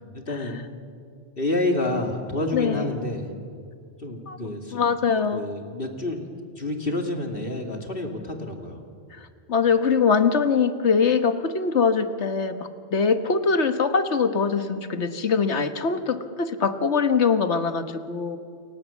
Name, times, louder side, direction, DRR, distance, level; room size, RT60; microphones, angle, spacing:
voice 1, 0.1-0.6 1.4-3.3 4.0-4.8 5.3-6.3 6.6-8.8, left 2 dB, 55° left, 3 dB, 3.0 m, -28 dB
voice 2, 2.5-2.9 4.3-4.4 4.7-5.4 9.1-18.4, left 5 dB, 75° left, 9 dB, 1.6 m, -23 dB
29.0 x 24.5 x 7.3 m, 2.3 s
omnidirectional pair, 1.2 m